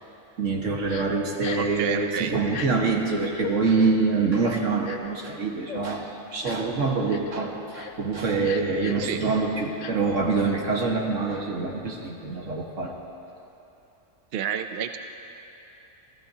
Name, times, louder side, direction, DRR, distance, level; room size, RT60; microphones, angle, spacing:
voice 1, 0.4-12.9, right 4 dB, 80° right, 0 dB, 1.8 m, -25 dB
Crying sobbing, 0.9-1.1 1.4-1.7 2.5-2.7 3.3-3.5 4.4-5.1 5.7-5.8 6.4-6.7 7.1-7.3 7.7-7.9 8.4-9.1 9.8-9.9, left 8 dB, 75° left, 1.0 m, -38 dB
voice 2, 1.6-2.3 9.0-9.2 14.3-15.0, right 8 dB, 60° right, 7 dB, 0.7 m, -30 dB
28.5 x 15.0 x 2.8 m, 3.0 s
omnidirectional pair, 1.3 m